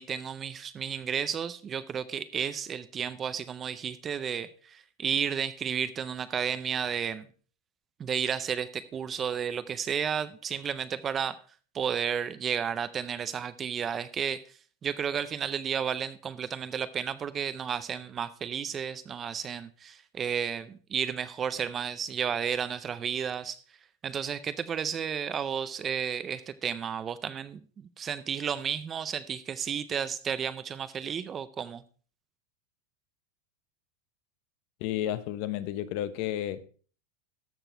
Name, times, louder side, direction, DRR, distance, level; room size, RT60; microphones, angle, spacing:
voice 1, 0.0-7.3 8.0-11.4 11.7-23.6 24.0-31.8, right 7 dB, 15° right, 0.4 m, -32 dB
voice 2, 34.8-36.6, left 12 dB, 40° left, 0.7 m, -32 dB
13.5 x 6.0 x 4.4 m
supercardioid pair, 175°, 0 cm